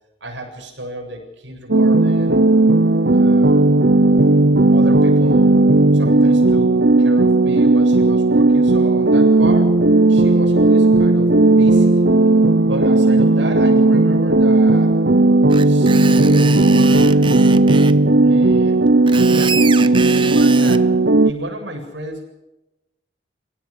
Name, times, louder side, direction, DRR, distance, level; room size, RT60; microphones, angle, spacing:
voice 1, 0.2-2.4 3.1-3.7 4.7-6.7 7.0-9.8 10.0-12.1 12.7-14.9 15.6-17.5 18.2-18.9 19.3-20.9 21.2-22.2, right 1 dB, 85° right, 3 dB, 8.0 m, -32 dB
sound 1, 1.7-21.3, right 2 dB, 65° right, 0.9 m, -14 dB
Screech, 15.5-18.0 18.9-20.8, right 4 dB, 25° right, 0.8 m, -25 dB
29.5 x 17.5 x 6.7 m, 0.95 s
head